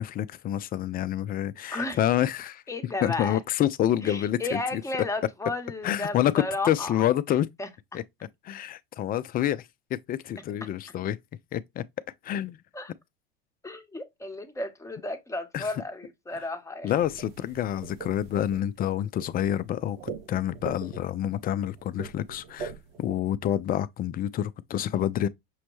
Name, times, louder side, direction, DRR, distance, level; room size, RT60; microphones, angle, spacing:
voice 1, 0.0-2.6 3.0-4.8 5.8-7.5 7.9-8.0 8.4-11.2 11.5-11.8 12.2-12.6 15.5-15.7 16.3-16.4 16.8-22.7 23.0-25.3, left 11 dB, 30° left, 0.4 m, -28 dB
voice 2, 1.7-2.0 2.7-3.4 4.0-7.0 7.6-8.0 12.7-12.9 13.6-16.9, left 2 dB, 10° left, 0.8 m, -33 dB
sound 1, 17.0-23.2, right 6 dB, 75° right, 1.0 m, -42 dB
6.2 x 2.1 x 3.0 m
hypercardioid pair, 85°, 30 cm